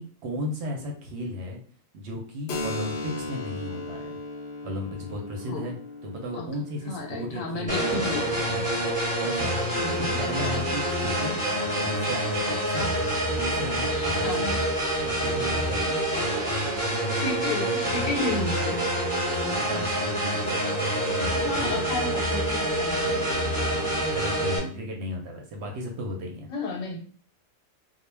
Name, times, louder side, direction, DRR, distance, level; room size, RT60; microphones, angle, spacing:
voice 1, 0.0-1.6 1.9-4.0 4.6-5.8 6.0-9.0 9.2-11.3 11.7-12.9 13.4-14.7 15.0-16.2 18.7-22.0 23.0-26.5, equal, 65° right, 1 dB, 0.7 m, -35 dB
Keyboard (musical), 2.5-9.9, left 3 dB, 60° left, 0.5 m, -38 dB
voice 2, 6.3-8.4 9.8-10.7 12.7-13.0 13.9-14.6 17.2-18.8 21.4-23.4 23.6-24.0 24.7-24.8 26.5-27.0, left 2 dB, 80° left, 2 dB, 1.0 m, -33 dB
sound 1, 7.7-24.6, right 1 dB, 5° right, 1.0 m, -27 dB
2.2 x 2.1 x 3.2 m, 0.44 s
omnidirectional pair, 1.4 m